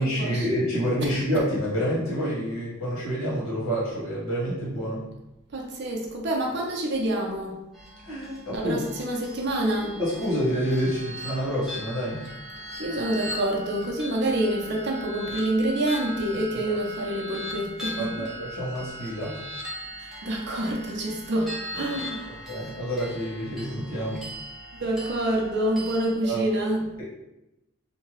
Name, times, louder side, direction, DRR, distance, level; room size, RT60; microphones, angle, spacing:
voice 1, 0.0-5.0 8.0-8.8 9.8-12.2 16.5-16.8 18.0-19.4 22.5-24.2 26.2-26.5, equal, 90° left, -7 dB, 1.3 m, -28 dB
voice 2, 1.0-1.4 5.5-7.6 8.5-10.0 12.8-18.3 20.0-22.3 24.8-26.9, right 1 dB, 55° right, 0 dB, 0.6 m, -27 dB
sound 1, 7.7-26.1, equal, ahead, 0.6 m, -39 dB
2.7 x 2.2 x 3.1 m, 0.93 s
head